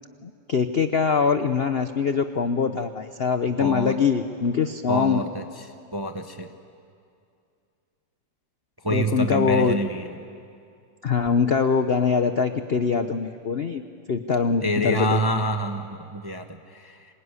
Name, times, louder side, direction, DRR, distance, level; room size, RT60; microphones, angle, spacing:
voice 1, 0.2-5.2 8.9-9.8 11.0-13.8 14.1-15.2, left 5 dB, 55° left, 9 dB, 0.7 m, -23 dB
voice 2, 3.6-4.0 4.9-5.6 5.9-6.5 8.8-10.2 14.6-17.1, equal, 20° right, 6 dB, 0.7 m, -27 dB
25.5 x 22.0 x 9.8 m, 2.4 s
omnidirectional pair, 2.1 m